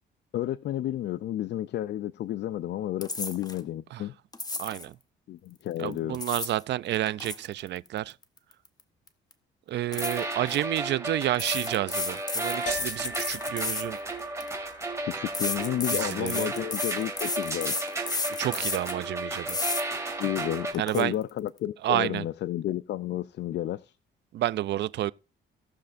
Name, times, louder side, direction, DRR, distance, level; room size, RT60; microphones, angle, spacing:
voice 1, 0.3-4.1 5.3-6.2 15.0-18.0 20.2-23.9, left 13 dB, 60° left, 0.4 m, -31 dB
sound 1, 3.0-3.6 4.3-4.9 5.9-6.6 6.9-8.8 9.1-9.3 9.9-10.6 11.3-14.5 15.3-19.0 19.5-19.8 20.3-20.4 20.7-21.0, left 3 dB, 20° left, 0.9 m, -33 dB
voice 2, 4.6-5.0 5.8-8.1 9.7-14.0 15.9-16.5 18.3-19.6 20.8-21.2 21.8-22.3 24.3-25.1, right 13 dB, 60° right, 0.4 m, -30 dB
sound 2, 9.9-20.7, right 2 dB, 15° right, 2.5 m, -34 dB
sound 3, 12.7-17.2, equal, 40° left, 3.0 m, -43 dB
17.5 x 6.6 x 2.5 m
cardioid pair, 90°, 20 cm